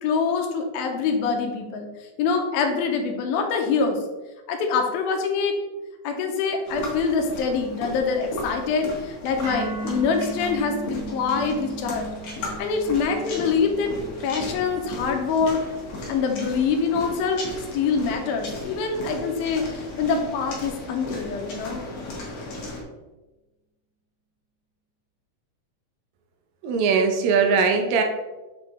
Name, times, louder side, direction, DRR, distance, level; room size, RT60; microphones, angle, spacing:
voice 1, 0.0-1.9 2.2-4.0 4.5-5.6 6.0-12.1 12.6-13.9 14.2-15.6 16.1-21.8, left 5 dB, 85° left, 3 dB, 2.6 m, -25 dB
sound 1, 6.7-22.8, left 2 dB, 55° left, 2.1 m, -36 dB
sound 2, 9.4-17.5, right 3 dB, 60° right, 2.5 m, -38 dB
voice 2, 26.6-28.0, right 5 dB, 80° right, 4 dB, 2.4 m, -20 dB
7.2 x 5.2 x 3.2 m, 1.1 s
omnidirectional pair, 4.2 m